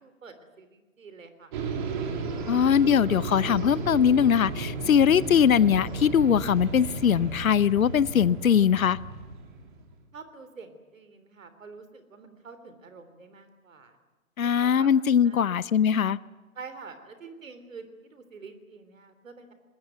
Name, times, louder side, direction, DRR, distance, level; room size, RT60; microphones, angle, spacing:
voice 1, 0.0-1.6 10.1-14.0 14.4-14.9 15.2-15.6 16.6-19.5, right 4 dB, 65° right, 10 dB, 3.6 m, -47 dB
sound 1, 1.5-9.8, right 3 dB, 35° right, 3.6 m, -34 dB
voice 2, 2.5-9.0 14.4-16.2, left 8 dB, 70° left, 19 dB, 0.8 m, -21 dB
24.0 x 20.5 x 9.0 m, 1.2 s
figure-of-eight pair, 145°, 43 cm